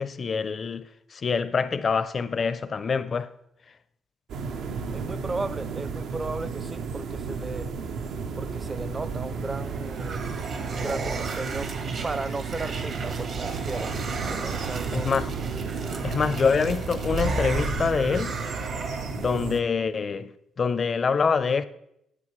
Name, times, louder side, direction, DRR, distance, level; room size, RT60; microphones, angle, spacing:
voice 1, 0.0-3.3 14.9-15.3 16.0-18.4 19.1-21.6, left 5 dB, 45° left, 0.5 m, -25 dB
sound 1, 4.3-19.6, right 5 dB, 75° right, 0.6 m, -33 dB
voice 2, 4.9-7.7 8.4-10.4 10.6-11.7 12.0-15.1 19.1-19.3, right 3 dB, 25° right, 0.5 m, -35 dB
sound 2, 9.4-19.4, right 3 dB, 60° right, 1.2 m, -34 dB
9.8 x 8.0 x 3.1 m
cardioid pair, 90°, 0 cm